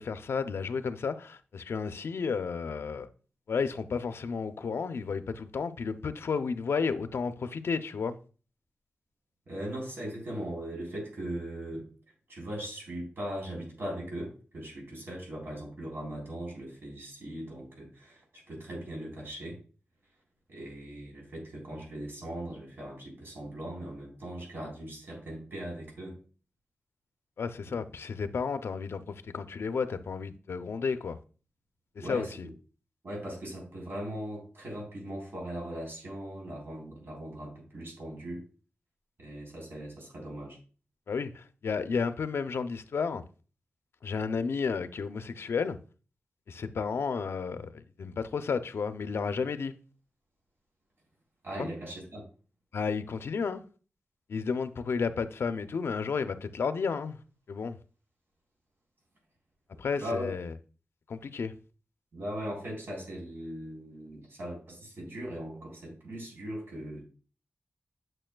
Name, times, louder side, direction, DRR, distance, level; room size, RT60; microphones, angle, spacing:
voice 1, 0.0-3.1 3.5-8.2 27.4-31.2 32.0-32.5 41.1-43.2 44.0-45.8 46.5-49.7 51.6-51.7 52.7-53.6 54.3-57.2 57.5-57.8 59.8-60.5 61.1-61.5, left 5 dB, 75° left, 0.5 m, -32 dB
voice 2, 9.5-11.9 12.3-19.6 20.5-26.2 27.7-27.8 32.0-32.5 33.0-38.5 39.2-40.6 51.4-52.2 60.0-60.3 62.1-67.0, right 1 dB, 65° right, 3.8 m, -39 dB
8.8 x 6.1 x 2.2 m
wide cardioid pair, 120°, 4 cm